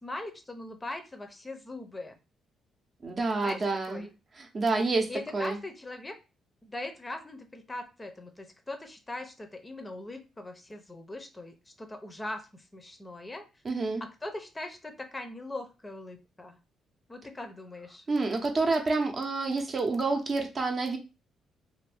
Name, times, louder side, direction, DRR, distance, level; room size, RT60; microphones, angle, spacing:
voice 1, 0.0-2.2 3.4-4.1 5.1-6.1 6.6-13.5 14.2-16.6 17.1-18.0, left 2 dB, 20° left, 0.6 m, -40 dB
voice 2, 3.0-4.0 4.4-5.6 13.6-14.0 18.1-21.0, right 3 dB, 40° right, 0.7 m, -28 dB
2.6 x 2.5 x 3.4 m
cardioid pair, 90°, 0 cm